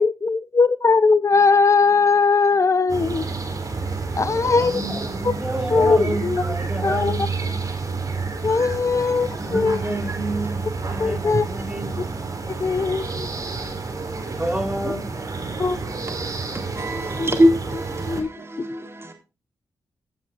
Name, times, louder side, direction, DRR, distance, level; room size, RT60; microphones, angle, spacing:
voice 1, 0.0-3.4 4.2-4.8 5.2-5.3 5.7-6.4 6.8-7.2 8.4-9.8 11.0-11.4 12.6-13.3 14.9-15.0 15.6-15.8 17.2-17.3 18.0-18.3, left 4 dB, 40° left, 0.9 m, -19 dB
sound 1, 2.9-18.2, right 4 dB, 50° right, 3.7 m, -29 dB
voice 2, 4.4-7.5 9.4-12.1 14.4-15.5, right 1 dB, 15° right, 4.6 m, -30 dB
voice 3, 9.8-10.3 11.0-11.1 12.5-13.1 13.8-14.6 15.1-19.1, equal, 35° right, 4.0 m, -26 dB
16.5 x 7.5 x 2.6 m
supercardioid pair, 45°, 8 cm